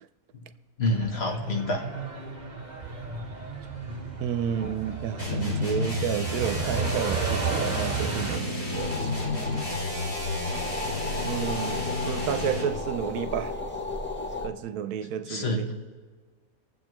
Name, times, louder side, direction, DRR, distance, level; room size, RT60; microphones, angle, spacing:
voice 1, 0.8-1.8 15.2-15.7, left 2 dB, 45° left, 1.3 m, -27 dB
Truck, 0.8-8.4, right 4 dB, 30° right, 1.2 m, -33 dB
voice 2, 4.2-9.8 11.2-13.5 14.4-15.7, right 9 dB, 90° right, 1.1 m, -31 dB
sound 1, 5.2-12.8, left 2 dB, 75° left, 4.3 m, -32 dB
sound 2, 8.7-14.5, left 2 dB, 10° left, 0.6 m, -34 dB
22.5 x 7.7 x 3.0 m
omnidirectional pair, 1.6 m